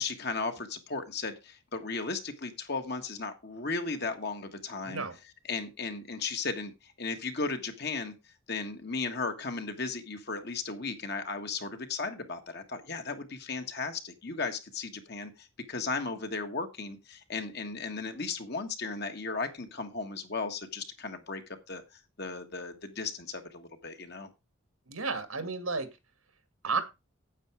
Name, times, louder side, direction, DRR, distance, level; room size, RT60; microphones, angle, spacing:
voice 1, 0.0-5.0 5.5-8.1 8.5-21.8 22.2-24.3, left 4 dB, 50° left, 6 dB, 1.6 m, -35 dB
voice 2, 4.8-5.1 24.9-25.9 26.6-26.8, right 4 dB, 90° right, 10 dB, 2.2 m, -32 dB
9.1 x 8.5 x 4.8 m, 0.25 s
head